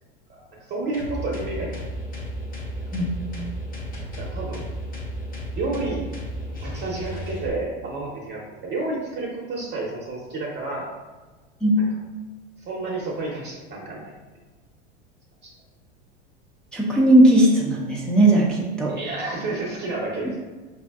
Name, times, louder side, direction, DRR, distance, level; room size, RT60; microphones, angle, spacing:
voice 1, 0.7-1.7 2.1-2.2 4.2-4.6 5.5-6.0 6.6-10.9 12.6-14.1 15.4-15.5 18.9-20.5, right 2 dB, 30° right, -3 dB, 0.9 m, -30 dB
sound 1, 0.9-7.5, equal, 25° left, 1.0 m, -33 dB
voice 2, 11.6-11.9 16.7-19.0, right 1 dB, ahead, -4 dB, 0.6 m, -18 dB
5.0 x 2.7 x 2.4 m, 1.3 s
hypercardioid pair, 90°, 34 cm